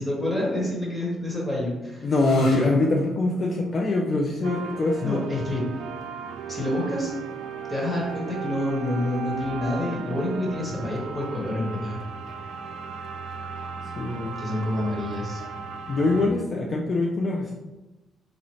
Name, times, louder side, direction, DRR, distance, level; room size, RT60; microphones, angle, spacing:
voice 1, 0.0-2.7 5.0-5.6 6.5-7.1 7.7-12.0 14.4-15.4, left 1 dB, 10° left, -3 dB, 1.4 m, -28 dB
voice 2, 2.0-5.2 14.0-14.4 15.9-17.5, left 2 dB, 45° left, -1 dB, 0.4 m, -23 dB
sound 1, 2.1-9.5, left 1 dB, 85° left, 1.1 m, -47 dB
sound 2, 4.4-16.3, right 6 dB, 80° right, 0.3 m, -36 dB
4.0 x 2.9 x 3.1 m, 1.0 s
cardioid pair, 90°, 0 cm